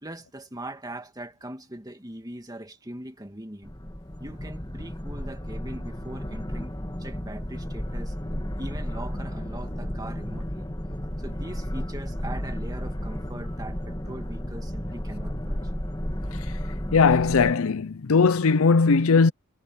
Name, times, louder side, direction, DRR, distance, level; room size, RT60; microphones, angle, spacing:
voice 1, 0.0-3.7 4.2-8.1 8.6-10.7 11.2-15.6, right 1 dB, 15° right, 2.0 m, -41 dB
sound 1, 3.6-17.5, equal, 20° left, 2.5 m, -33 dB
voice 2, 16.9-19.3, left 4 dB, 70° left, 0.6 m, -19 dB
head